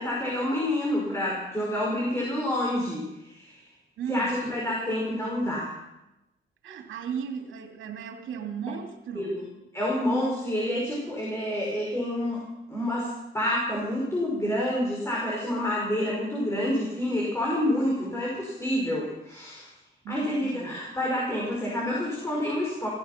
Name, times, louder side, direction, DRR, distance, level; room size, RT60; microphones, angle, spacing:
voice 1, 0.0-3.6 4.1-5.7 9.2-9.5 9.7-12.4 12.7-19.7 20.1-22.9, left 1 dB, 15° left, -4 dB, 5.8 m, -28 dB
voice 2, 4.0-4.3 6.6-9.4 20.0-20.8, right 7 dB, 75° right, 4 dB, 2.8 m, -36 dB
16.5 x 14.5 x 6.0 m, 0.94 s
cardioid pair, 90°, 20 cm